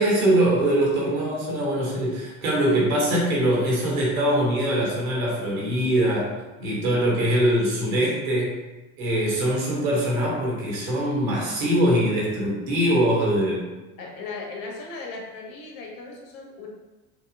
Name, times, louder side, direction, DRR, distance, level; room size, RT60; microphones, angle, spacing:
voice 1, 0.0-6.3 6.6-8.5 9.0-13.6, right 1 dB, 75° right, -4 dB, 1.3 m, -22 dB
voice 2, 14.0-16.7, left 3 dB, 55° left, 0 dB, 1.0 m, -37 dB
4.6 x 2.3 x 2.6 m, 1.1 s
hypercardioid pair, 70°, 41 cm